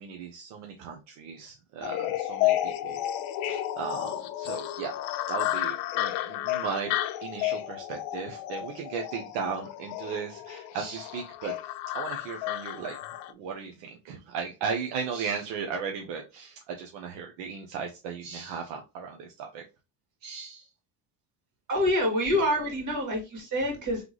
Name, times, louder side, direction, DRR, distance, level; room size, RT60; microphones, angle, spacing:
voice 1, 0.0-3.0 3.4-4.9 5.3-6.9 7.2-13.0 13.3-19.6 20.2-20.7, right 6 dB, 70° right, 3 dB, 0.9 m, -36 dB
sound 1, 1.8-13.3, left 14 dB, 80° left, 0.6 m, -32 dB
voice 2, 21.7-24.1, left 1 dB, 45° right, 0 dB, 2.5 m, -26 dB
3.8 x 3.4 x 3.1 m, 0.27 s
cardioid pair, 115°, 43 cm